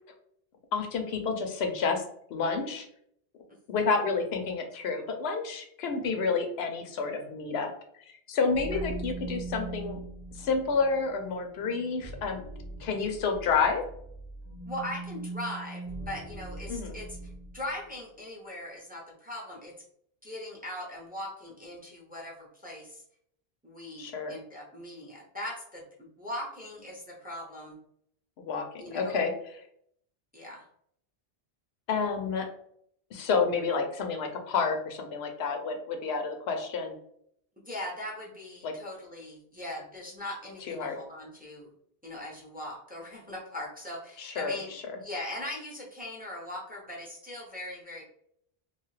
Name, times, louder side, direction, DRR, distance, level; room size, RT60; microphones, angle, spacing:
voice 1, 0.7-2.0 2.3-2.8 3.7-7.7 8.3-10.0 10.4-12.4 12.8-13.8 16.7-17.0 24.0-24.3 28.4-28.7 28.9-29.6 31.9-32.5 33.1-37.0 38.6-38.7 40.7-41.0 44.2-44.8, left 5 dB, 85° left, 4 dB, 0.8 m, -29 dB
sound 1, 8.5-17.7, right 2 dB, 60° left, 0.7 m, -41 dB
voice 2, 14.6-19.7 20.2-23.0 23.6-27.7 28.8-29.2 30.3-30.6 37.7-41.7 42.0-44.7 45.0-48.0, left 1 dB, 10° right, -3 dB, 0.6 m, -40 dB
2.7 x 2.3 x 3.1 m, 0.68 s
omnidirectional pair, 1.0 m